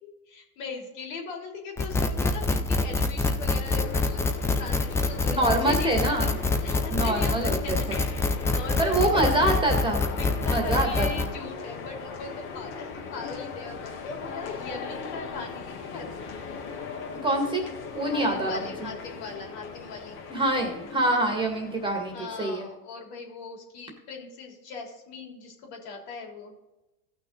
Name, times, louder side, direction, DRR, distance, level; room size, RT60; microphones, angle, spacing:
voice 1, 0.0-4.3 4.6-6.3 6.6-8.1 8.5-9.4 10.2-16.1 18.0-20.2 22.1-26.6, left 4 dB, 70° left, 1 dB, 3.5 m, -39 dB
sound 1, 1.8-11.3, left 3 dB, 5° left, 0.4 m, -26 dB
sound 2, 3.7-22.7, left 5 dB, 50° left, 2.4 m, -39 dB
voice 2, 5.2-6.4 6.9-8.0 8.8-10.1 10.5-11.3 17.2-17.7 17.9-18.9 20.3-22.7, right 1 dB, 10° right, 2 dB, 1.9 m, -26 dB
16.0 x 6.2 x 3.9 m, 1.0 s
supercardioid pair, 120°, 49 cm